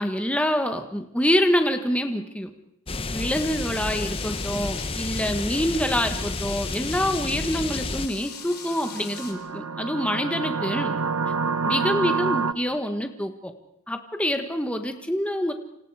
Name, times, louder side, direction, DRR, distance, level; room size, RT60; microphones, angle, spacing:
voice 1, 0.0-2.5 3.1-11.0 11.6-13.5 13.9-15.5, equal, 5° left, 6 dB, 1.6 m, -26 dB
sound 1, 2.9-8.1, left 2 dB, 25° left, 1.0 m, -31 dB
sound 2, 3.3-9.3, left 8 dB, 45° left, 4.0 m, -40 dB
sound 3, 8.5-12.5, right 4 dB, 90° right, 1.1 m, -27 dB
29.5 x 27.0 x 5.0 m, 0.79 s
head